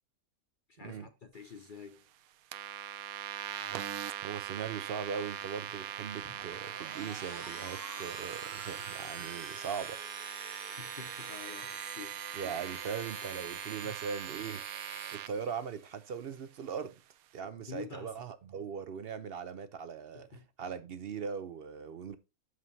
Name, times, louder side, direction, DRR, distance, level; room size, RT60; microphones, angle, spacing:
voice 1, 0.7-2.0 10.6-12.2 13.8-14.0 17.6-18.1 20.1-20.5, left 6 dB, 50° left, 0.6 m, -48 dB
sound 1, 2.5-15.3, right 10 dB, 85° right, 1.1 m, -41 dB
voice 2, 4.2-10.0 12.3-14.6 15.1-16.9 17.3-22.2, right 6 dB, 55° right, 0.7 m, -40 dB
sound 2, 6.2-15.9, right 3 dB, 40° right, 1.8 m, -47 dB
12.5 x 5.1 x 2.7 m
omnidirectional pair, 1.5 m